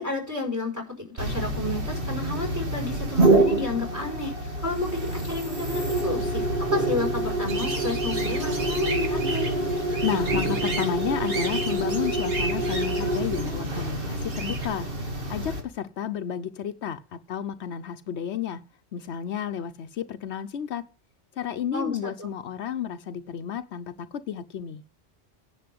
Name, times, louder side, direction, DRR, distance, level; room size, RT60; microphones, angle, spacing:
voice 1, 0.0-4.3 4.6-6.4 6.7-9.6 21.7-22.3, left 2 dB, 15° right, 5.0 m, -31 dB
sound 1, 1.2-15.6, right 2 dB, 55° right, 2.4 m, -27 dB
sound 2, 7.5-14.7, right 3 dB, 85° right, 2.2 m, -35 dB
voice 2, 10.0-14.9 15.3-18.6 18.9-20.8 21.4-24.8, left 9 dB, 80° left, 1.0 m, -31 dB
10.5 x 6.2 x 7.7 m
omnidirectional pair, 1.1 m